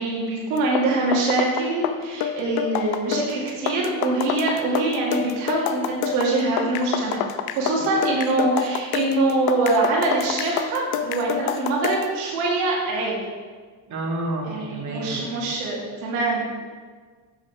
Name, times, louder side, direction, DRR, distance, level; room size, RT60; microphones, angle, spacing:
voice 1, 0.0-7.2 7.5-13.2 14.5-16.5, right 2 dB, 80° right, -3 dB, 2.0 m, -24 dB
sound 1, 0.6-12.1, left 9 dB, 55° left, 0.7 m, -28 dB
voice 2, 13.9-15.2, right 1 dB, 40° right, -1 dB, 2.0 m, -29 dB
7.7 x 6.3 x 4.5 m, 1.5 s
hypercardioid pair, 70°, 46 cm